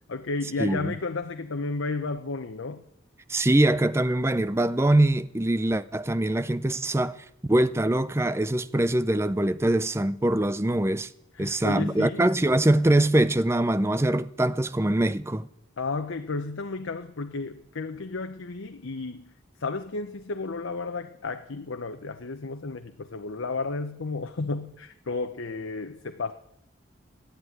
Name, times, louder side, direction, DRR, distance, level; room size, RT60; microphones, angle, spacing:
voice 1, 0.1-2.8 11.3-12.3 15.8-19.3 19.6-26.3, left 3 dB, 80° left, 0.8 m, -32 dB
voice 2, 0.6-0.9 3.3-7.2 7.5-11.1 11.4-15.5, right 1 dB, 15° right, 0.5 m, -23 dB
13.0 x 10.5 x 9.5 m
head